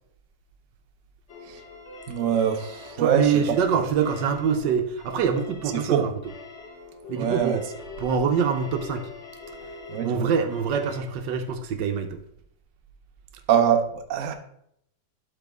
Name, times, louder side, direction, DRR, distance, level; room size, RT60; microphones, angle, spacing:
sound 1, 1.3-11.0, left 4 dB, 40° left, 1.4 m, -43 dB
voice 1, 2.1-3.4 3.7-3.8 5.7-6.1 7.2-7.6 9.9-10.3 13.5-14.3, right 8 dB, 60° right, 1.0 m, -24 dB
voice 2, 3.0-6.1 7.1-7.6 8.0-9.0 10.0-12.2, right 6 dB, 75° right, 1.4 m, -25 dB
11.5 x 4.0 x 3.5 m
omnidirectional pair, 1.9 m